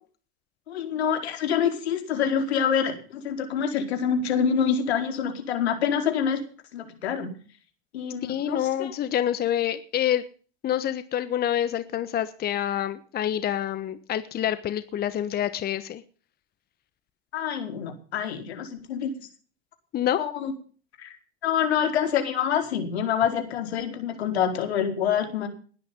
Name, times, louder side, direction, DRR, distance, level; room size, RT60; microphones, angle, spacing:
voice 1, 0.7-6.4 6.7-7.3 7.9-8.9 17.3-19.3 20.2-20.5 21.0-21.1 21.4-25.5, left 8 dB, 80° left, 6 dB, 4.7 m, -26 dB
voice 2, 8.2-10.2 10.6-16.0 19.9-20.2, left 11 dB, 30° left, 13 dB, 1.3 m, -27 dB
20.0 x 9.7 x 5.3 m, 0.40 s
hypercardioid pair, 110°, 32 cm